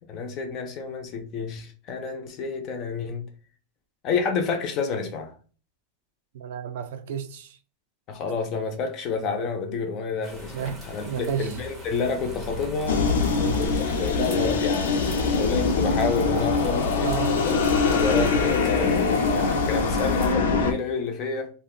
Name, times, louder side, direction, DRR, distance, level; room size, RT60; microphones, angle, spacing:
voice 1, 0.1-3.3 4.0-5.3 8.1-13.0 13.6-21.5, left 4 dB, 30° left, 0.5 m, -29 dB
voice 2, 6.3-7.6 10.5-11.6 13.3-13.6 17.0-17.4, right 8 dB, 60° right, 0.4 m, -32 dB
sound 1, 10.2-20.3, right 1 dB, 5° right, 0.7 m, -38 dB
sound 2, 12.9-20.7, left 4 dB, 85° left, 0.5 m, -23 dB
2.5 x 2.1 x 3.6 m
supercardioid pair, 175°, 0 cm